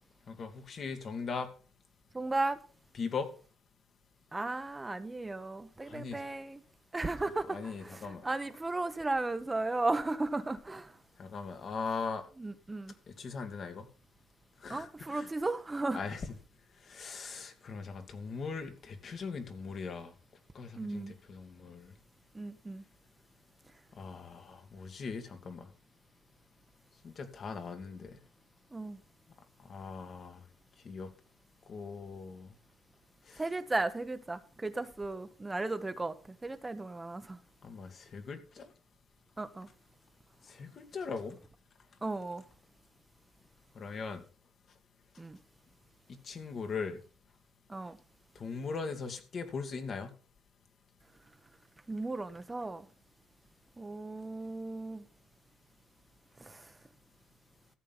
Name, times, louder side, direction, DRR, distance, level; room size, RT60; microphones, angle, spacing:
voice 1, 0.3-1.5 2.9-3.3 5.9-6.3 7.5-8.2 11.2-12.3 13.1-13.9 14.6-15.3 15.9-16.3 16.9-20.1 20.5-21.9 24.0-25.7 27.0-28.2 29.7-30.4 30.8-31.1 31.7-32.5 33.3-33.4 37.6-38.7 40.5-41.4 43.8-44.2 46.1-47.0 48.4-50.1, left 5 dB, 55° left, 2.2 m, -40 dB
voice 2, 2.1-2.6 4.3-6.6 6.9-10.9 12.4-12.9 14.7-16.0 20.8-21.1 22.3-22.8 28.7-29.0 33.4-37.4 39.4-39.7 42.0-42.4 45.2-45.4 47.7-48.0 51.9-52.9 53.8-55.0 56.4-56.7, right 2 dB, 20° right, 1.0 m, -35 dB
14.0 x 7.6 x 5.6 m
cardioid pair, 90°, 0 cm